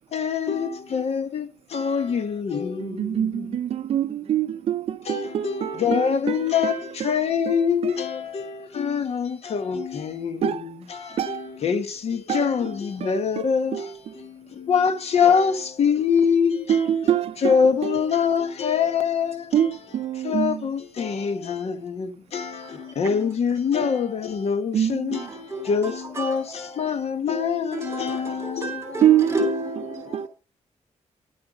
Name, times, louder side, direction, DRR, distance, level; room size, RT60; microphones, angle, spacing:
voice 1, 0.1-3.6 5.1-16.9 17.4-19.7 20.2-29.0 30.1-30.3, left 6 dB, 55° left, 1.2 m, -25 dB
voice 2, 2.8-7.2 7.5-7.6 7.8-7.9 10.4-10.7 11.2-11.5 12.3-12.5 13.0-14.3 16.7-18.0 19.5-20.7 24.7-25.3 29.0-29.4 30.1-30.3, right 10 dB, 55° right, 0.5 m, -25 dB
voice 3, 22.6-22.9 25.1-26.5 27.7-30.3, right 1 dB, 20° right, 3.0 m, -31 dB
10.5 x 7.9 x 5.0 m
wide cardioid pair, 150°, 12 cm